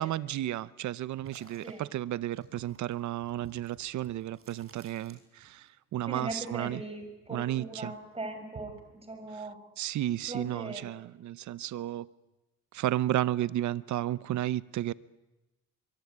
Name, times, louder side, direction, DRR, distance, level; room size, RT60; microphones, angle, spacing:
voice 1, 0.0-6.8 7.3-7.9 9.8-12.1 12.7-14.9, right 13 dB, 70° right, 0.8 m, -33 dB
sound 1, 1.2-5.7 6.0-7.6 7.9-8.9, right 5 dB, 45° right, 5.5 m, -53 dB
voice 2, 6.1-9.6 10.3-10.9, right 2 dB, 20° right, 6.6 m, -40 dB
23.5 x 23.5 x 9.6 m
cardioid pair, 90°, 30 cm